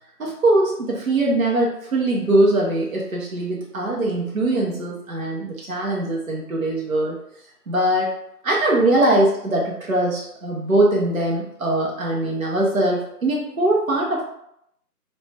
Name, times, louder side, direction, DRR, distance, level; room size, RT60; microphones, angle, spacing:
voice 1, 0.2-7.2 7.7-8.1 8.4-14.3, right 1 dB, 60° right, -2 dB, 0.7 m, -21 dB
2.6 x 2.1 x 3.2 m, 0.75 s
figure-of-eight pair, 175°, 47 cm